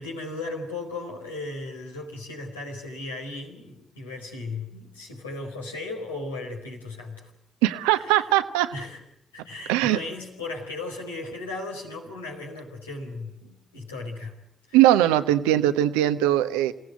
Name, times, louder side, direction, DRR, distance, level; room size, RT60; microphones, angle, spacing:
voice 1, 0.0-7.3 7.9-8.3 8.7-9.0 9.3-14.4 14.7-14.8, left 2 dB, 90° left, -1 dB, 4.6 m, -36 dB
voice 2, 7.6-8.7 9.7-10.0 14.7-16.7, right 13 dB, 75° right, 11 dB, 1.1 m, -20 dB
29.0 x 18.0 x 9.3 m, 0.70 s
figure-of-eight pair, 40°, 0 cm